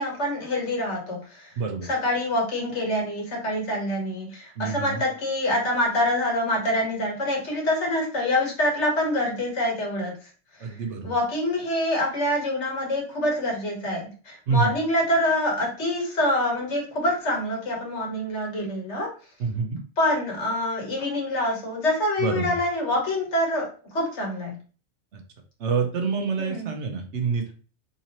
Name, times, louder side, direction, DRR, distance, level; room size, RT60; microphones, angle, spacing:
voice 1, 0.0-1.5 1.8-10.1 10.6-10.7 11.0-19.1 20.0-23.7 23.9-24.6 26.4-26.7, left 1 dB, 80° left, 0 dB, 1.6 m, -26 dB
voice 2, 1.6-1.9 4.6-5.0 10.6-11.1 14.5-14.7 19.4-19.8 22.2-22.6 25.1-25.2 25.6-27.5, right 5 dB, 80° right, 4 dB, 1.1 m, -27 dB
3.8 x 2.8 x 2.9 m, 0.37 s
omnidirectional pair, 1.2 m